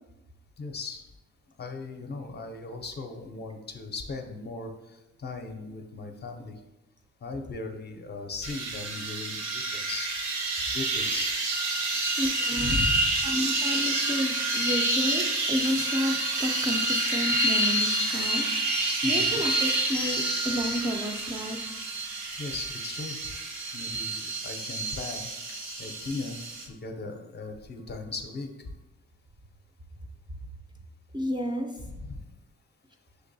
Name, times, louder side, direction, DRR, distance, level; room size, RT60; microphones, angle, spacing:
voice 1, 0.6-1.0 1.6-6.6 7.2-10.1 10.7-11.4 11.8-12.1 12.6-13.1 19.0-19.4 22.4-23.3 23.7-25.2 25.8-26.4 26.7-28.7 31.8-32.2, left 3 dB, 35° left, 4 dB, 0.5 m, -37 dB
sound 1, 8.4-26.7, right 2 dB, 80° right, 0.8 m, -28 dB
voice 2, 12.2-12.8 13.2-21.8 31.1-31.7, equal, 15° right, 2 dB, 0.4 m, -31 dB
6.0 x 2.9 x 2.6 m, 1.0 s
cardioid pair, 90°, 30 cm